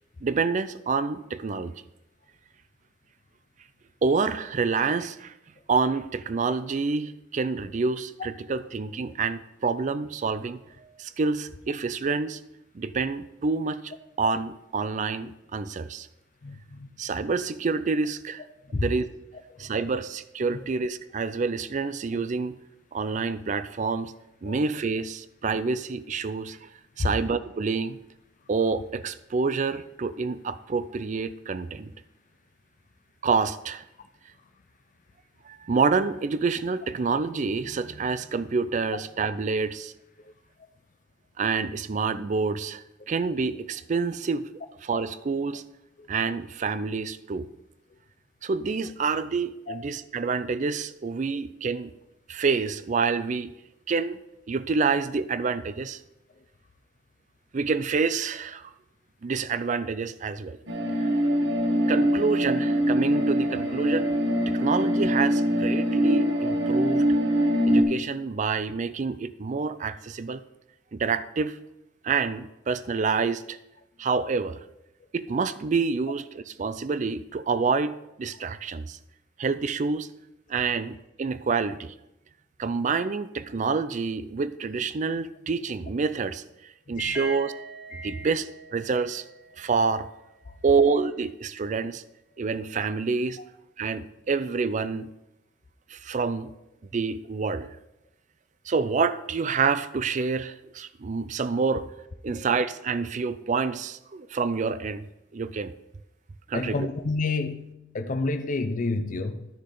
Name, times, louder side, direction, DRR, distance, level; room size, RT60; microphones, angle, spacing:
voice 1, 0.2-1.8 4.0-5.3 5.7-10.6 11.0-12.4 12.7-13.9 14.2-16.1 17.0-18.4 18.7-19.1 19.6-22.6 22.9-24.1 24.4-26.7 27.0-28.0 28.5-31.9 33.2-33.8 35.5-39.9 41.4-44.5 44.8-45.6 46.1-47.5 48.4-51.9 52.3-53.5 53.9-54.2 54.5-56.0 57.5-58.7 59.2-60.6 60.9-61.1 61.9-64.2 64.5-67.0 67.7-70.4 70.9-71.6 72.0-73.6 74.0-74.6 75.1-79.0 79.4-80.1 80.5-81.9 82.6-86.4 86.9-87.5 88.0-89.2 89.6-90.1 90.6-92.0 92.4-93.4 93.8-95.1 95.9-96.5 96.9-97.7 98.7-101.9 102.2-105.1 105.3-105.7 106.5-106.9, right 4 dB, 40° right, 0.4 m, -27 dB
voice 2, 16.4-16.9 18.7-18.8 24.5-24.6 27.0-27.1 49.7-49.8 66.4-66.5 87.0-87.3 87.9-88.3 90.5-90.6 102.3-102.5 106.5-109.5, left 3 dB, 45° left, 0.5 m, -30 dB
sound 1, 60.7-67.8, equal, 75° right, 1.3 m, -23 dB
sound 2, 87.1-91.0, right 3 dB, 5° right, 1.0 m, -45 dB
12.0 x 6.5 x 3.8 m
head